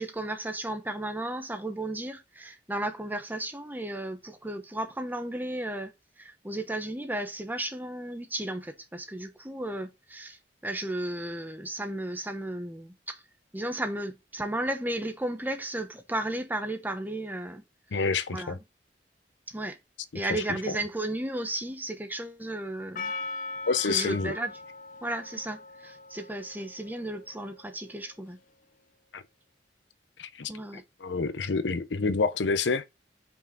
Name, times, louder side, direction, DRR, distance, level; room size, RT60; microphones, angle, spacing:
voice 1, 0.0-5.9 6.2-13.2 13.5-17.6 18.3-18.6 19.5-19.8 20.1-23.1 23.8-24.5 25.0-28.4 30.5-30.8, right 1 dB, 10° right, 1.0 m, -34 dB
voice 2, 17.9-18.6 20.3-20.4 23.7-24.3 29.1-29.2 30.2-30.5 31.0-32.8, left 4 dB, 90° left, 0.7 m, -28 dB
Percussion, 23.0-27.9, left 3 dB, 50° left, 0.5 m, -40 dB
5.6 x 4.8 x 3.9 m
head